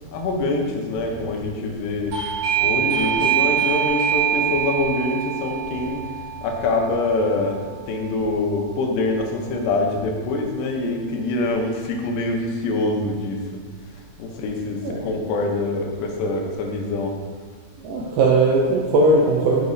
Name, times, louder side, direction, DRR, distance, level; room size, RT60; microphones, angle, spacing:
voice 1, 0.0-2.2 2.6-6.0 6.4-13.6 14.2-17.2, left 2 dB, 85° left, 2 dB, 2.9 m, -25 dB
Doorbell, 2.1-8.6, right 10 dB, 65° right, 3.6 m, -25 dB
voice 2, 17.8-19.7, right 2 dB, 85° right, -2 dB, 2.0 m, -18 dB
7.1 x 6.6 x 2.7 m, 1.5 s
omnidirectional pair, 4.8 m